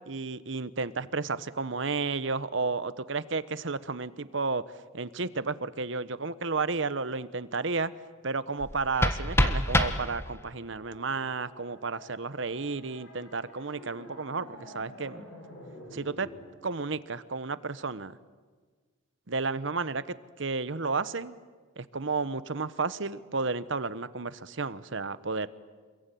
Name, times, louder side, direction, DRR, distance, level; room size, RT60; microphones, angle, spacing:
voice 1, 0.1-4.6 4.9-7.9 8.2-15.2 15.9-16.3 16.6-18.2 19.3-21.3 21.8-25.5, right 4 dB, 60° right, 15 dB, 1.0 m, -32 dB
sound 1, 8.6-10.6, left 1 dB, 10° left, 1.4 m, -27 dB
sound 2, 10.2-16.4, equal, 65° left, 7.7 m, -49 dB
27.0 x 22.0 x 9.2 m, 1.5 s
head